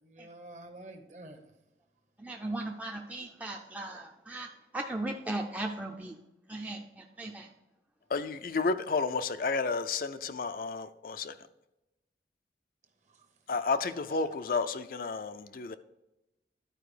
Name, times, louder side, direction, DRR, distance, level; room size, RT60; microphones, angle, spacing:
voice 1, 0.0-1.4 13.1-13.2 13.5-14.3, right 1 dB, 40° right, 1.2 m, -49 dB
voice 2, 2.2-6.2 6.5-7.5, right 2 dB, 10° right, 0.5 m, -37 dB
voice 3, 8.1-11.3 13.5-15.8, left 4 dB, 50° left, 0.4 m, -31 dB
11.5 x 4.8 x 4.9 m
head